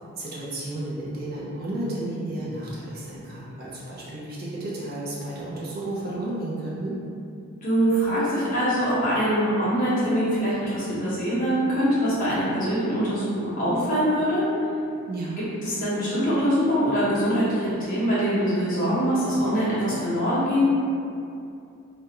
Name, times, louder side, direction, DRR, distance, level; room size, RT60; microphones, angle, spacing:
voice 1, 0.1-7.0 15.1-15.4, right 1 dB, 45° right, -7 dB, 0.4 m, -32 dB
voice 2, 7.6-14.5 15.6-20.7, equal, 35° left, -10 dB, 0.7 m, -23 dB
2.3 x 2.1 x 2.8 m, 2.5 s
head